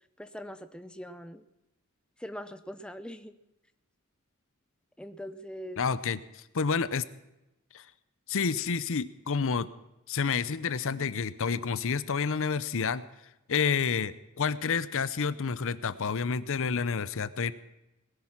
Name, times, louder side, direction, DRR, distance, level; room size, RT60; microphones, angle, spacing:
voice 1, 0.2-1.4 2.2-3.4 5.0-5.8, equal, 5° left, 11 dB, 0.7 m, -42 dB
voice 2, 5.8-7.1 7.7-7.9 8.3-9.7 10.1-13.0 13.5-17.5, left 5 dB, 60° left, 16 dB, 0.7 m, -29 dB
19.5 x 11.0 x 5.8 m, 0.94 s
head